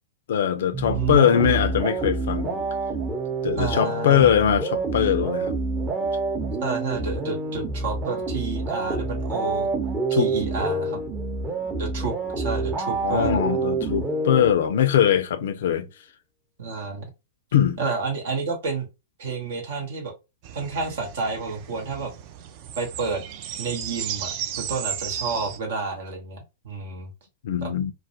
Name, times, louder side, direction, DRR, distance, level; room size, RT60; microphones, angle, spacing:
voice 1, 0.3-2.6 3.4-5.6 10.1-10.3 13.0-15.9 17.5-17.8 27.4-27.9, left 9 dB, 70° left, 0.3 m, -21 dB
sound 1, 0.7-15.0, right 3 dB, 20° right, 0.7 m, -28 dB
voice 2, 0.9-1.6 3.6-4.3 6.6-9.7 10.1-11.0 11.8-13.4 16.6-17.0 17.8-18.9 19.2-20.1 20.5-22.1 22.8-23.2 23.6-26.4 26.6-27.1 27.6-27.7, right 4 dB, 65° right, 0.7 m, -30 dB
sound 2, 20.4-25.6, right 9 dB, 45° right, 0.3 m, -34 dB
2.3 x 2.0 x 2.6 m
hypercardioid pair, 110°, 0 cm